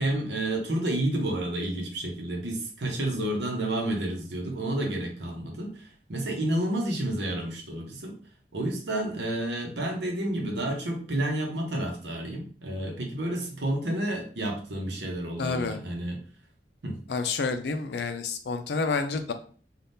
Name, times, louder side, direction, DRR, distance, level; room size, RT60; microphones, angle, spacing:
voice 1, 0.0-8.1 8.5-16.2 16.8-17.0, right 1 dB, 75° right, 1 dB, 0.8 m, -30 dB
voice 2, 15.4-15.8 17.1-19.3, left 4 dB, 70° left, 8 dB, 0.4 m, -29 dB
3.4 x 2.4 x 2.7 m, 0.42 s
head